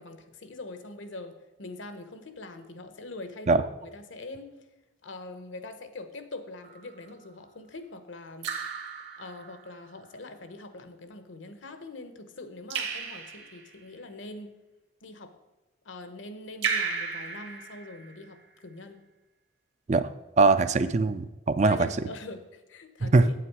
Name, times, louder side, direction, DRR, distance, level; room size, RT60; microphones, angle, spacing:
voice 1, 0.0-4.7 5.0-8.5 9.2-14.5 15.0-15.3 15.8-19.0 21.6-23.3, left 2 dB, 75° left, 9 dB, 1.0 m, -43 dB
Raindrop / Drip, 6.6-7.1 8.4-9.8 12.7-13.8 16.6-18.3, right 6 dB, 60° right, 1.2 m, -34 dB
voice 2, 20.4-21.8 23.0-23.3, right 3 dB, 35° right, 11 dB, 0.3 m, -21 dB
8.3 x 8.2 x 4.8 m, 1.0 s
head